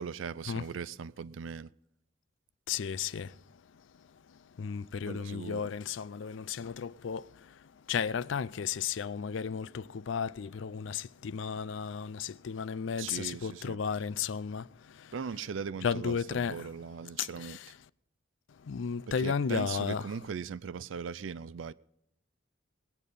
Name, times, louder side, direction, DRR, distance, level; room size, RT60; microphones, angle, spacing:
voice 1, 0.0-1.7 5.1-5.7 13.0-13.8 15.1-17.6 19.2-21.7, right 6 dB, 85° right, 0.4 m, -39 dB
voice 2, 2.7-3.3 4.6-7.2 7.9-14.6 15.8-16.6 17.2-17.3 18.7-20.1, left 6 dB, 75° left, 0.4 m, -33 dB
19.5 x 8.4 x 5.4 m
head